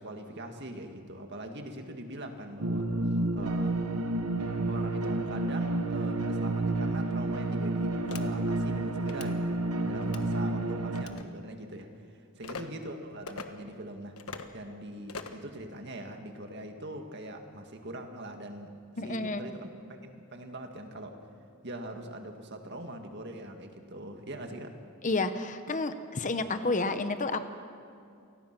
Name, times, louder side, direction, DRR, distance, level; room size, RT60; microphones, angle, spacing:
voice 1, 0.0-3.0 3.3-3.7 4.7-9.6 9.9-11.9 12.4-14.2 14.5-18.7 19.0-21.1 21.6-24.8, right 1 dB, 50° right, 4 dB, 2.0 m, -42 dB
sound 1, 2.6-11.0, right 2 dB, 80° right, 1.3 m, -30 dB
sound 2, 8.1-8.2 9.0-9.3 10.0-10.3 10.9-11.2 12.4-12.6 13.3-13.5 14.2-14.5 15.1-15.4, left 4 dB, 80° left, 1.3 m, -41 dB
voice 2, 19.0-19.5 25.0-27.4, left 3 dB, 35° left, 9 dB, 0.9 m, -30 dB
28.5 x 18.5 x 6.1 m, 2.4 s
head